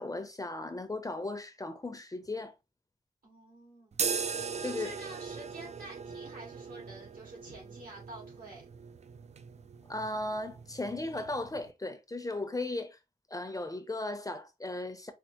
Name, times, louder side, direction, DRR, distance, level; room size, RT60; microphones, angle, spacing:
voice 1, 0.0-2.5 4.6-5.0 9.9-13.0 13.3-15.1, left 2 dB, 25° left, 0.6 m, -36 dB
voice 2, 3.2-4.0 4.6-8.6, right 2 dB, 75° right, 2.1 m, -48 dB
sound 1, 3.9-11.7, right 6 dB, 50° right, 0.4 m, -39 dB
4.3 x 2.0 x 2.9 m
cardioid pair, 60°, 15 cm